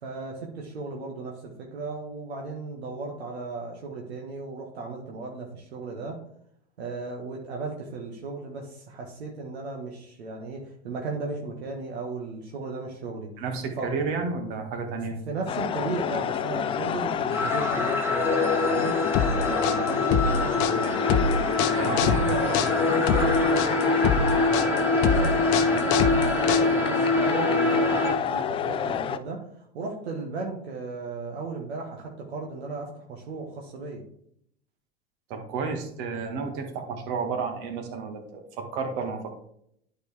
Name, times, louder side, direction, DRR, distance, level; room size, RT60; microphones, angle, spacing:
voice 1, 0.0-6.2 6.8-13.3 13.8-14.0 15.3-19.0 19.3-21.0 21.8-34.0, right 3 dB, 75° right, -1 dB, 1.4 m, -35 dB
voice 2, 13.4-15.2 21.7-22.3 35.3-39.4, right 4 dB, 55° right, 4 dB, 1.9 m, -31 dB
sound 1, 15.5-29.2, left 8 dB, 20° left, 0.3 m, -29 dB
sound 2, 17.3-28.1, left 2 dB, 5° right, 1.7 m, -25 dB
sound 3, 19.1-27.0, left 6 dB, 50° left, 0.8 m, -25 dB
11.5 x 4.6 x 3.4 m, 0.70 s
hypercardioid pair, 90°, 32 cm